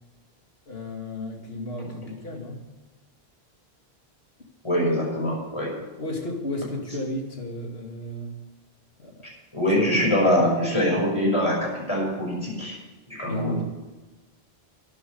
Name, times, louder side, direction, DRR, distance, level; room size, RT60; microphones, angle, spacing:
voice 1, 0.7-2.7 6.0-8.4 9.0-9.3 9.7-10.0 13.3-13.6, left 1 dB, 65° left, 1 dB, 2.8 m, -33 dB
voice 2, 4.6-5.7 9.5-12.8 13.1-13.6, equal, 25° left, -3 dB, 5.9 m, -23 dB
12.5 x 9.8 x 6.9 m, 1.1 s
omnidirectional pair, 1.1 m